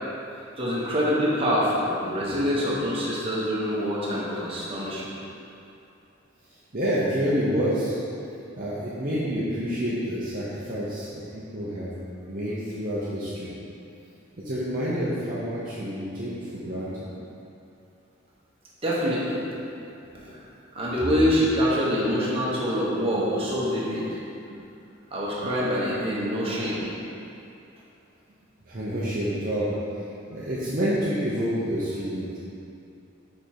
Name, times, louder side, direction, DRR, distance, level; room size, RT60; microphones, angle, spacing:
voice 1, 0.6-5.1 18.8-19.4 20.1-20.4 20.7-24.2 25.1-26.8, equal, 30° right, -7 dB, 1.3 m, -25 dB
voice 2, 6.7-8.0 8.5-11.9 12.3-13.5 14.4-17.0 24.5-24.6 26.8-26.9 28.7-30.0 30.3-32.4, equal, 45° right, -9 dB, 0.8 m, -28 dB
5.3 x 5.2 x 4.5 m, 2.7 s
head